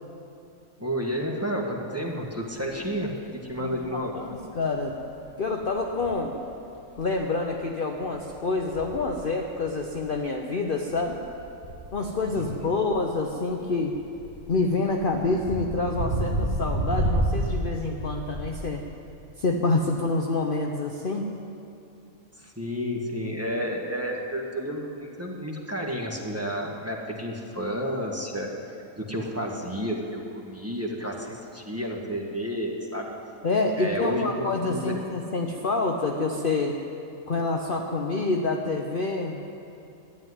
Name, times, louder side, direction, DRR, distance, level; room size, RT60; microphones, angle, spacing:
voice 1, 0.8-3.1 3.4-4.2 12.3-12.7 22.4-28.5 29.0-33.1 33.8-34.9, equal, 10° right, -1 dB, 1.4 m, -31 dB
sound 1, 2.2-2.3 2.5-3.1 3.5-3.9 4.2-4.4 4.8-5.3 5.6-6.5 6.9-7.6 7.9-10.2 10.8-18.6, right 1 dB, 35° right, 1.5 m, -31 dB
voice 2, 3.6-4.9 5.4-6.4 7.0-11.2 11.9-13.9 14.5-18.8 19.4-21.3 33.4-36.7 37.3-39.4, left 3 dB, 45° left, 2 dB, 0.8 m, -27 dB
12.0 x 9.9 x 9.6 m, 2.7 s
omnidirectional pair, 1.5 m